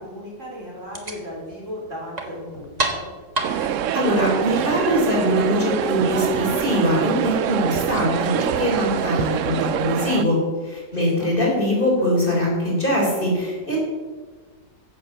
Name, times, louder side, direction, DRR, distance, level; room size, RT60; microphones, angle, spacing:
voice 1, 0.0-3.1 10.9-11.3, equal, 40° right, -5 dB, 5.0 m, -36 dB
sound 1, 0.8-9.0, right 2 dB, 25° right, 1.5 m, -34 dB
sound 2, 3.4-10.2, right 10 dB, 90° right, 0.6 m, -25 dB
voice 2, 3.5-13.8, equal, 25° left, -3 dB, 4.1 m, -22 dB
15.0 x 8.2 x 6.7 m, 1.4 s
omnidirectional pair, 2.0 m